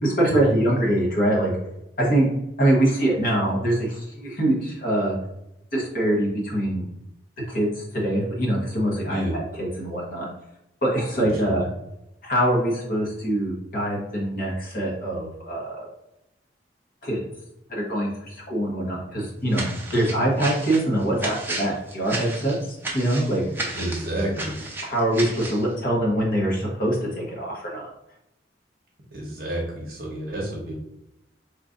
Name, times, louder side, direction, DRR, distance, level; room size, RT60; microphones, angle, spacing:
voice 1, 0.0-1.5 2.0-2.3 2.6-5.1 5.7-6.9 7.5-9.2 9.6-10.3 10.8-11.7 12.2-15.9 17.0-17.2 17.7-23.4 24.8-27.9, right 1 dB, 45° left, -3 dB, 1.1 m, -24 dB
voice 2, 9.0-9.4 11.3-11.5 23.7-24.6 29.1-30.7, right 1 dB, 55° right, -3 dB, 0.8 m, -29 dB
sound 1, 19.5-25.6, right 2 dB, 10° right, 0.5 m, -33 dB
3.1 x 2.5 x 3.7 m, 0.85 s
head